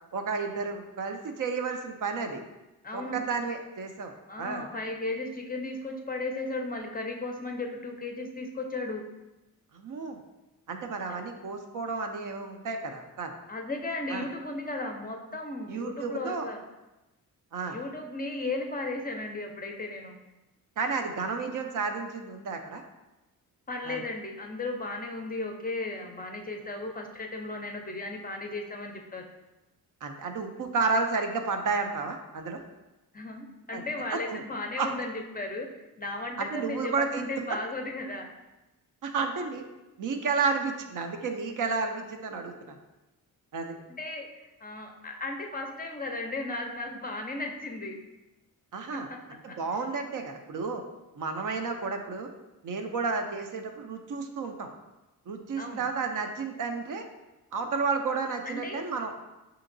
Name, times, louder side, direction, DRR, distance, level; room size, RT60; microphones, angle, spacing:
voice 1, 0.1-2.4 2.9-4.6 9.7-10.2 10.7-13.4 14.1-14.3 15.7-16.5 17.5-17.8 20.8-22.8 23.8-24.0 30.0-32.6 33.7-33.8 34.1-34.4 34.8-34.9 36.4-37.3 39.0-39.6 40.0-42.8 43.5-43.8 48.7-49.1 49.4-50.8 51.2-52.3 52.6-54.7 55.3-57.0 57.5-59.1, right 4 dB, 55° right, 5 dB, 0.5 m, -31 dB
voice 2, 2.8-3.2 4.3-9.0 11.1-11.2 13.5-16.6 17.7-20.2 23.7-29.3 33.1-38.3 43.9-44.3 44.6-48.0 48.9-49.2 49.5-49.6 55.6-55.8 58.4-58.9, left 2 dB, 25° left, 3 dB, 0.5 m, -35 dB
5.0 x 2.8 x 2.6 m, 1.0 s
cardioid pair, 85°, 37 cm